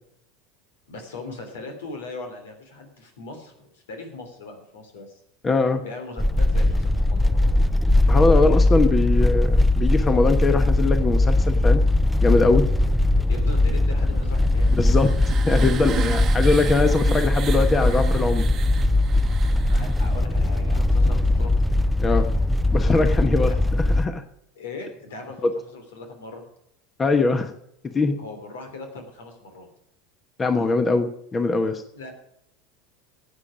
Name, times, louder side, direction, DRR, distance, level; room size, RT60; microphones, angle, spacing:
voice 1, 0.9-5.2 5.8-7.5 13.3-14.7 19.7-21.5 23.5-23.6 24.5-26.4 28.2-29.7 31.9-32.1, left 3 dB, 80° left, 5 dB, 3.1 m, -39 dB
voice 2, 5.4-5.8 8.1-11.8 12.2-12.7 14.7-18.4 22.0-22.3 22.7-24.2 25.4-25.5 27.0-27.5 27.9-28.1 30.4-31.8, left 3 dB, 25° left, 8 dB, 1.2 m, -22 dB
sound 1, 6.2-24.1, left 1 dB, 5° left, 0.5 m, -20 dB
sound 2, 14.4-20.2, right 10 dB, 40° right, 1.0 m, -36 dB
15.0 x 8.8 x 5.0 m, 0.76 s
hypercardioid pair, 90°, 0 cm